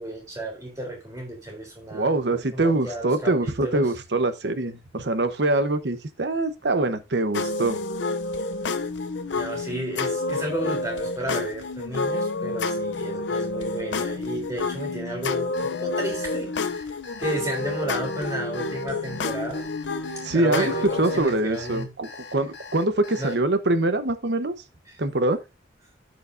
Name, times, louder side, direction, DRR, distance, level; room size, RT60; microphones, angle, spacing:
voice 1, 0.0-3.9 9.3-16.9 17.2-19.7 20.3-21.9 22.4-22.5 23.2-23.4 24.9-25.0, right 1 dB, 20° right, 3.4 m, -33 dB
voice 2, 1.9-7.8 20.2-24.5 25.0-25.4, right 2 dB, 75° right, 1.0 m, -24 dB
sound 1, 7.3-21.2, left 3 dB, 85° left, 0.6 m, -29 dB
Alarm, 15.5-23.3, left 5 dB, 65° left, 1.3 m, -43 dB
14.0 x 4.9 x 2.6 m
head